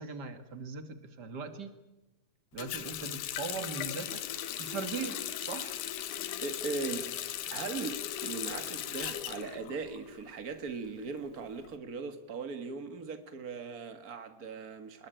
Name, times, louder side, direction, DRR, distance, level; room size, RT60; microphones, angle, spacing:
voice 1, 0.0-1.7 2.5-4.2 4.6-5.8, right 5 dB, 45° right, 9 dB, 1.3 m, -40 dB
Water tap faucet, 2.6-10.3 10.6-11.7, left 11 dB, 65° left, 2.3 m, -38 dB
voice 2, 6.4-7.1 7.5-15.1, right 4 dB, 90° right, 8 dB, 0.8 m, -39 dB
25.0 x 21.5 x 9.1 m, 1.0 s
omnidirectional pair, 4.5 m